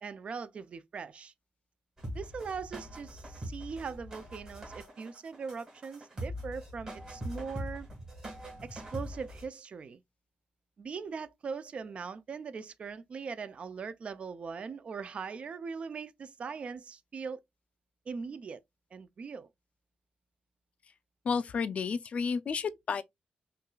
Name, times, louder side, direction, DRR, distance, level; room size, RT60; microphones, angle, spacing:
voice 1, 0.0-1.3 2.1-7.9 8.6-10.0 10.8-17.4 18.1-18.6 18.9-19.5, right 5 dB, 40° right, 0.4 m, -40 dB
sound 1, 2.0-9.5, equal, 25° right, 1.7 m, -42 dB
voice 2, 21.3-23.0, left 5 dB, 45° left, 0.3 m, -31 dB
5.7 x 2.4 x 2.3 m
wide cardioid pair, 180°, 3 cm